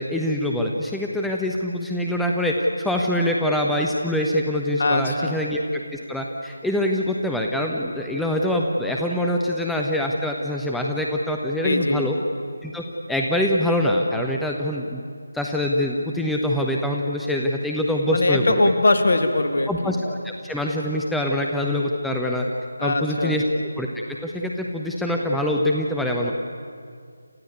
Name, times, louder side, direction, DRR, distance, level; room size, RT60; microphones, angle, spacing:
voice 1, 0.0-12.1 12.6-15.0 15.3-18.6 19.7-22.4 22.8-23.4 23.8-26.3, left 1 dB, ahead, 0 dB, 1.0 m, -24 dB
voice 2, 4.8-5.4 11.6-12.1 18.1-19.9 22.8-23.4, left 2 dB, 50° left, 7 dB, 2.3 m, -21 dB
29.0 x 14.5 x 9.6 m, 2.2 s
figure-of-eight pair, 155°, 0 cm